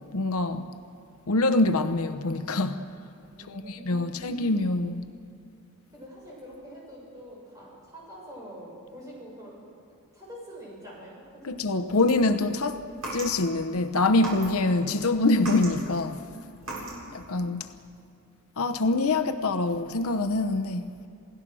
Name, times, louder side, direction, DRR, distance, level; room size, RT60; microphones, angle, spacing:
voice 1, 0.1-0.7 1.3-2.8 3.5-5.0 11.4-12.8 13.1-16.2 17.1-17.7 18.6-20.9, left 2 dB, 80° left, 0.9 m, -25 dB
voice 2, 3.3-4.8 5.9-9.7 10.1-11.6 16.6-17.7 19.1-19.4, equal, 15° right, 7.0 m, -46 dB
sound 1, 11.9-13.7 14.1-14.8 15.1-17.1, right 2 dB, 85° right, 7.6 m, -38 dB
28.0 x 17.0 x 6.2 m
head